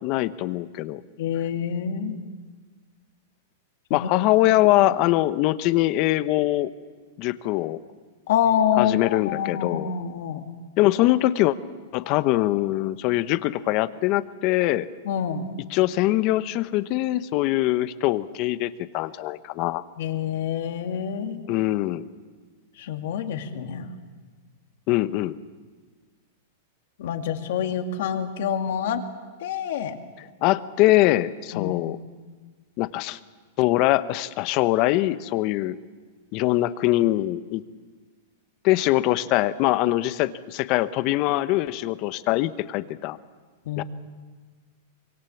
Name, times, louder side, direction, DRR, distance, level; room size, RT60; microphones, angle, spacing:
voice 1, 0.0-1.0 3.9-6.7 7.2-7.8 8.8-9.9 10.8-11.6 11.9-14.9 15.7-19.8 21.5-22.0 24.9-25.4 30.4-32.0 32.8-33.2 33.6-35.8 36.3-37.6 38.6-43.2 43.8-43.9, left 16 dB, 45° left, 14 dB, 0.9 m, -23 dB
voice 2, 1.2-2.2 3.9-4.1 8.3-10.4 15.1-15.4 20.0-21.4 22.8-23.9 27.0-29.0 29.4-30.0 31.5-31.8 43.7-43.8, left 8 dB, 70° left, 6 dB, 2.2 m, -26 dB
25.0 x 23.0 x 7.2 m, 1.5 s
hypercardioid pair, 135°, 0 cm